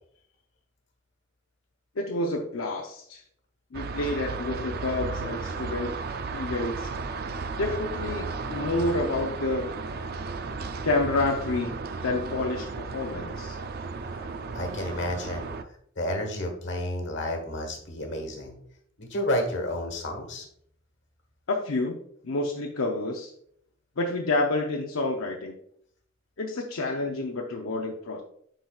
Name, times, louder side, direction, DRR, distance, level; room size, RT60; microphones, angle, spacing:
voice 1, 2.0-3.2 3.7-6.0 6.3-6.9 7.6-9.7 10.8-11.8 12.0-13.6 21.5-22.0 22.2-23.3 24.0-25.6 26.4-28.2, left 2 dB, 80° left, 0 dB, 0.6 m, -29 dB
sound 1, 3.7-15.6, right 4 dB, 50° right, 0.4 m, -34 dB
voice 2, 14.5-15.5 16.0-18.6 19.0-20.5, left 1 dB, 60° left, 4 dB, 1.4 m, -31 dB
10.0 x 4.0 x 2.3 m, 0.67 s
head